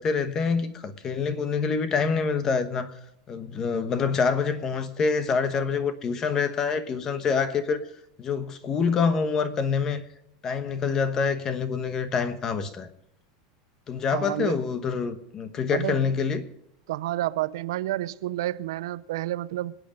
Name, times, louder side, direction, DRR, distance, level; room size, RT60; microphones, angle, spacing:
voice 1, 0.0-2.9 3.3-7.8 8.2-10.0 10.4-12.9 13.9-16.4, left 5 dB, 25° left, 1.1 m, -26 dB
voice 2, 14.1-14.6 15.7-16.0 16.9-19.7, right 15 dB, 80° right, 0.6 m, -29 dB
26.5 x 9.0 x 5.2 m
supercardioid pair, 165°, 2 cm